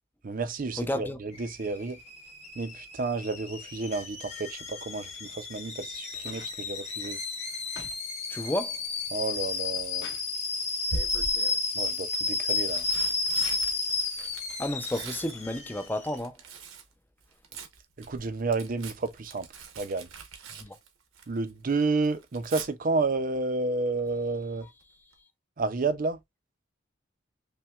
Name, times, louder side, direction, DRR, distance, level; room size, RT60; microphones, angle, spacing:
voice 1, 0.2-2.0 2.6-7.2 9.1-10.1 11.7-12.9 18.0-19.5 19.8-20.1 21.3-24.7 25.6-26.2, right 3 dB, 40° right, 0.5 m, -31 dB
voice 2, 0.8-1.2 8.3-8.8 14.6-16.4 20.5-20.8, left 1 dB, 10° left, 0.5 m, -31 dB
Alarm / Boiling, 1.3-16.2, left 4 dB, 35° left, 1.2 m, -32 dB
sound 1, 6.2-8.0 8.4-8.9 9.4-10.3 11.5-11.6, left 3 dB, 55° left, 1.4 m, -49 dB
Tearing, 9.4-9.8 10.9-11.6 12.4-16.9 17.2-21.5 21.8-22.7 24.5-24.8 25.1-25.2, right 3 dB, 75° right, 0.9 m, -41 dB
5.5 x 2.2 x 2.3 m
head